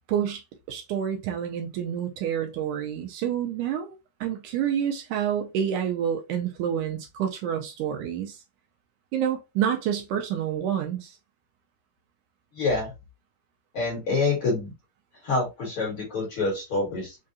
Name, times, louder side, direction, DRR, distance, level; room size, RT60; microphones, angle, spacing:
voice 1, 0.1-0.4 0.7-8.4 9.1-11.2, right 9 dB, 80° right, 1.9 m, -28 dB
voice 2, 12.5-12.9 13.7-14.7 15.2-17.2, left 3 dB, 45° left, 2.1 m, -26 dB
5.4 x 2.5 x 2.6 m
omnidirectional pair, 3.8 m